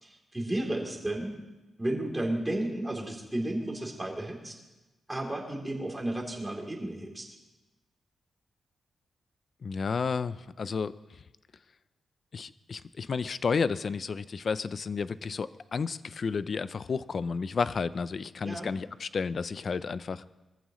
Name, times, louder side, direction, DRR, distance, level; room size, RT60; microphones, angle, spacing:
voice 1, 0.0-1.3 1.8-4.5 5.1-7.3 18.4-18.7, right 1 dB, 10° right, -2 dB, 3.3 m, -33 dB
voice 2, 9.6-10.9 12.3-20.3, left 5 dB, 45° left, 15 dB, 0.5 m, -32 dB
23.0 x 14.5 x 3.1 m, 1.1 s
wide cardioid pair, 120°, 0 cm